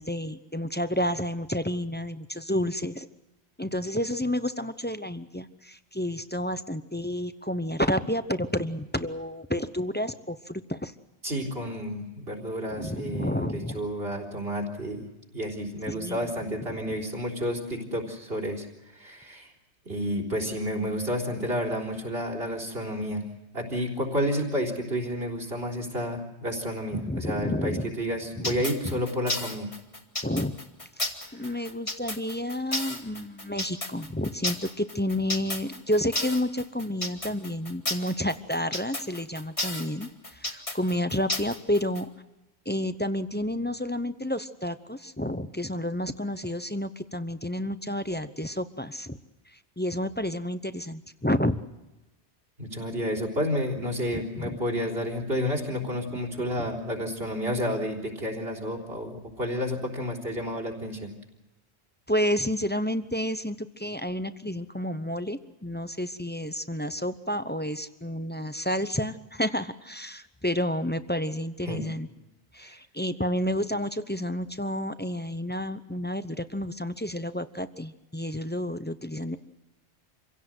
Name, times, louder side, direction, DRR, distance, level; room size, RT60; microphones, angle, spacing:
voice 1, 0.0-3.1 3.6-10.9 12.7-13.9 15.9-16.3 26.9-27.9 28.4-28.5 28.8-29.0 30.2-30.5 31.0-42.1 42.7-49.2 49.8-51.6 54.1-54.6 62.1-72.1 72.5-79.4, left 1 dB, 10° left, 11 dB, 0.7 m, -30 dB
voice 2, 11.2-15.1 15.3-19.5 19.8-23.3 23.5-29.7 31.4-31.5 52.6-61.1 71.6-71.8 72.6-72.8, equal, 60° right, 3 dB, 4.2 m, -31 dB
sound 1, 28.4-42.0, left 2 dB, 30° left, 2.4 m, -32 dB
27.0 x 17.0 x 7.9 m, 1.0 s
omnidirectional pair, 1.1 m